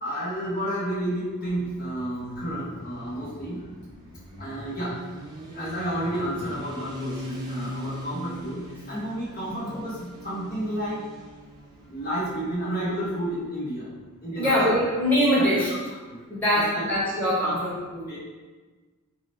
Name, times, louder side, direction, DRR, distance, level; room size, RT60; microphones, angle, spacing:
voice 1, 0.0-3.7 4.4-5.1 5.5-11.1 11.8-13.9 14.2-14.8 15.4-15.5 16.1-16.2 16.5-16.8 17.4-17.6 18.1-18.2, equal, 45° left, -8 dB, 0.9 m, -31 dB
Motorcycle, 1.7-13.4, equal, 20° right, 0.5 m, -41 dB
voice 2, 14.4-15.7 16.3-18.1, equal, 10° left, -9 dB, 1.1 m, -23 dB
4.7 x 2.1 x 4.0 m, 1.3 s
head